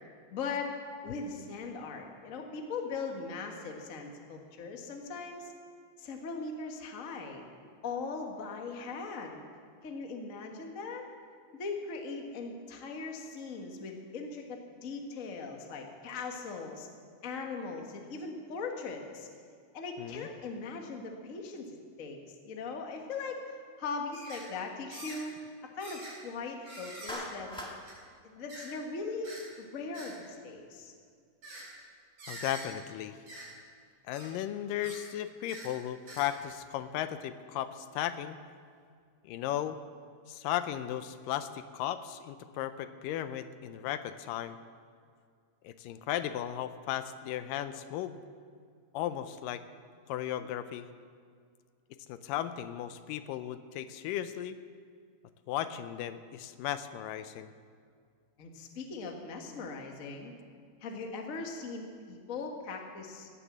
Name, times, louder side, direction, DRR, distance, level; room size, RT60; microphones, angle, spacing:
voice 1, 0.3-0.7 1.0-5.5 6.0-7.4 7.8-9.5 9.8-11.0 11.6-16.9 17.2-19.3 19.7-22.2 22.4-25.3 25.7-27.5 28.2-30.9 58.4-60.3 60.8-63.3, left 4 dB, 50° left, 2 dB, 0.9 m, -39 dB
voice 2, 20.0-20.3 32.3-33.2 34.1-38.4 39.2-39.8 40.3-44.6 45.6-48.2 48.9-49.6 50.1-50.9 52.1-54.6 55.5-57.5, left 11 dB, 80° left, 11 dB, 2.3 m, -36 dB
sound 1, 24.1-24.4 24.9-25.2 25.8-26.1 26.6-27.2 27.9-28.0 28.5-28.7 29.2-29.4 29.9-30.1 31.4-31.6 32.2-32.7 33.3-33.5 34.1-34.3 34.8-35.0 35.5-35.7 36.1-36.5 37.0-37.1, right 1 dB, 55° right, 6.0 m, -45 dB
Clapping, 27.1-27.8, equal, 5° left, 0.6 m, -40 dB
17.0 x 9.9 x 7.4 m, 2.2 s
omnidirectional pair, 3.9 m